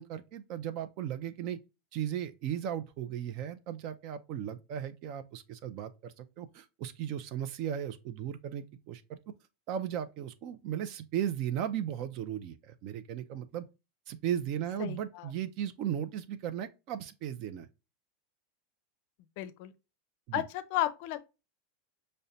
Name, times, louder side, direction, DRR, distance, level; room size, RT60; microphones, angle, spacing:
voice 1, 0.0-1.6 1.9-9.2 9.7-13.7 14.1-17.7 20.3-20.4, right 10 dB, 50° right, 0.4 m, -36 dB
voice 2, 14.8-15.3 19.4-19.7 20.3-21.2, left 13 dB, 60° left, 0.4 m, -33 dB
5.3 x 2.1 x 2.6 m
supercardioid pair, 125°, 0 cm